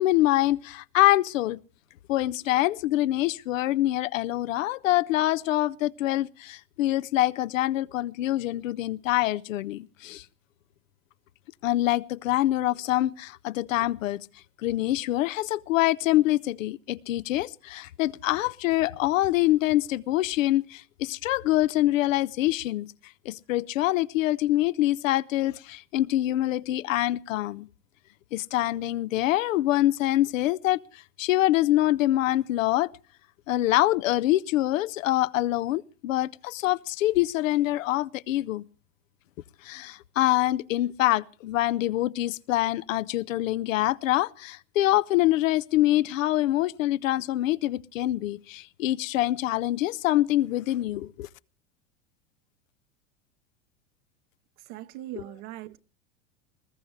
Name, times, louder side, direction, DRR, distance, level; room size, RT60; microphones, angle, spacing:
voice 1, 0.0-1.6 2.1-10.2 11.6-14.3 14.6-22.9 23.3-27.7 28.3-32.9 33.5-38.6 39.6-51.3, left 15 dB, 85° left, 0.6 m, -25 dB
voice 2, 54.6-55.8, right 15 dB, 60° right, 0.8 m, -40 dB
20.5 x 14.0 x 3.2 m
hypercardioid pair, 100°, 38 cm